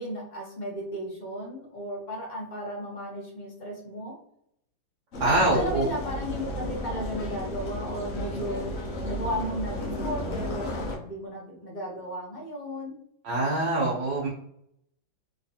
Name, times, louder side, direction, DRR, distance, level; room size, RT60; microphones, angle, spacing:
voice 1, 0.0-4.1 5.3-8.6 9.0-13.0, equal, 85° left, -3 dB, 0.4 m, -35 dB
sound 1, 5.1-11.0, left 1 dB, 65° left, 0.8 m, -33 dB
voice 2, 5.2-5.9 13.2-14.3, right 2 dB, 75° right, -4 dB, 1.4 m, -24 dB
3.2 x 3.1 x 2.7 m, 0.72 s
omnidirectional pair, 2.1 m